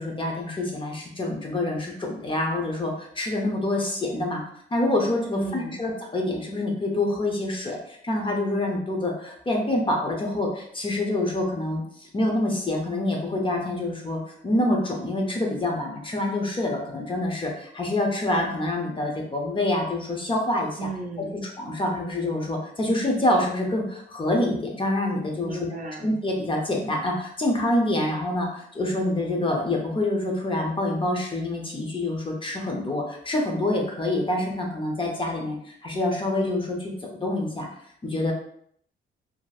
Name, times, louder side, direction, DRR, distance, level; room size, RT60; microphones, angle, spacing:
voice 1, 0.0-4.4 4.7-11.8 12.1-20.9 21.6-25.6 26.0-36.9 37.2-37.7 38.0-38.3, left 1 dB, 25° left, 0 dB, 0.7 m, -26 dB
voice 2, 5.3-5.8 20.8-21.4 25.5-26.1, right 3 dB, 45° right, 1 dB, 0.6 m, -34 dB
2.9 x 2.6 x 2.4 m, 0.65 s
cardioid pair, 90°, 20 cm